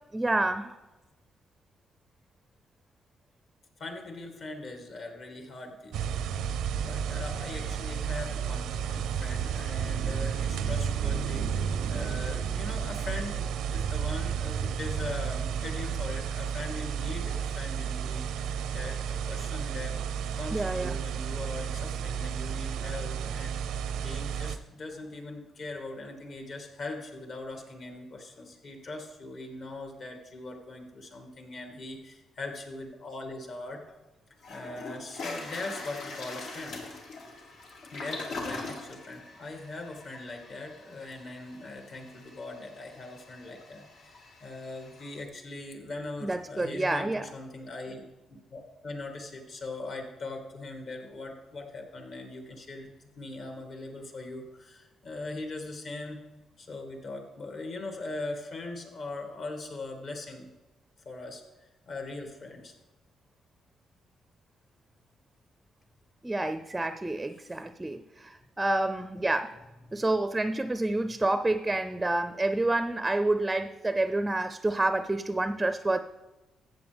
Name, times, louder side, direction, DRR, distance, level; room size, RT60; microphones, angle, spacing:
voice 1, 0.1-0.8 20.5-21.0 46.2-47.3 66.2-69.5 69.9-76.0, right 2 dB, 15° right, 11 dB, 0.5 m, -28 dB
voice 2, 3.8-19.9 20.4-33.8 34.5-36.8 37.9-48.0 48.3-56.2 56.6-60.5 61.1-61.4 61.9-62.7 67.4-67.6, left 2 dB, 55° left, 3 dB, 2.2 m, -41 dB
sound 1, 5.9-24.6, right 8 dB, 85° right, 0.6 m, -32 dB
Toilet flush, 33.9-34.0 34.4-45.2, left 3 dB, 75° left, 2.2 m, -43 dB
14.0 x 8.0 x 3.5 m, 1.1 s
cardioid pair, 90°, 0 cm